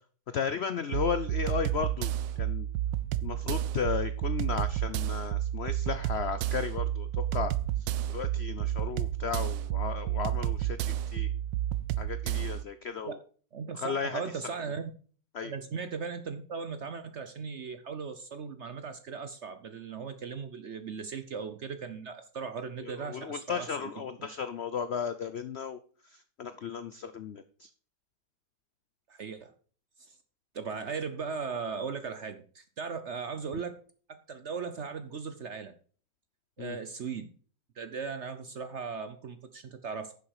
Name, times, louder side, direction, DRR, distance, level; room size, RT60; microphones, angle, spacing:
voice 1, 0.3-2.7 3.2-7.5 8.1-11.3 12.0-13.2 13.7-14.2 15.3-15.5 22.8-25.8 26.0-27.7 36.6-36.8, left 6 dB, 75° left, 11 dB, 0.6 m, -35 dB
sound 1, 0.9-12.6, right 12 dB, 85° right, 1.3 m, -31 dB
voice 2, 13.5-14.9 15.4-23.9 29.1-29.5 30.1-30.2 30.5-33.8 34.1-35.7 36.6-37.3 37.8-40.2, right 5 dB, 55° right, 9 dB, 0.8 m, -38 dB
10.5 x 7.0 x 4.8 m, 0.43 s
omnidirectional pair, 1.9 m